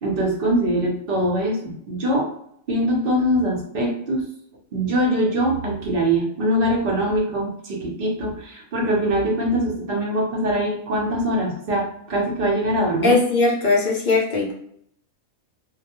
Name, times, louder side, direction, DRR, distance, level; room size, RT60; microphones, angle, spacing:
voice 1, 0.0-2.3 2.7-4.3 4.7-13.2, right 1 dB, 50° right, -1 dB, 0.7 m, -22 dB
voice 2, 13.0-14.5, left 3 dB, 55° left, -4 dB, 0.5 m, -19 dB
2.3 x 2.2 x 2.8 m, 0.69 s
omnidirectional pair, 1.5 m